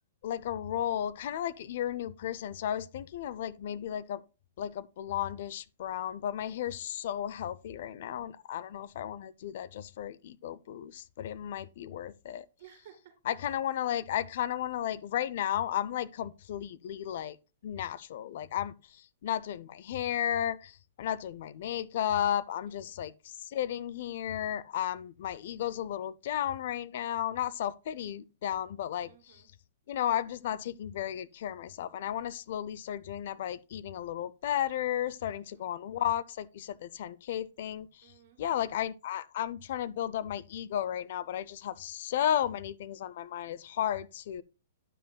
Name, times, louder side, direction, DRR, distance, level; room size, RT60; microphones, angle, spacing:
voice 1, 0.2-4.2 4.6-12.5 13.3-17.4 17.6-18.7 19.2-23.1 23.5-29.1 29.9-37.9 38.4-44.4, left 10 dB, 55° left, 0.4 m, -34 dB
voice 2, 12.6-13.6 22.7-23.0 29.0-29.5 35.3-35.7 38.0-38.7, right 10 dB, 50° right, 2.3 m, -57 dB
9.8 x 7.2 x 2.2 m
hypercardioid pair, 155°, 0 cm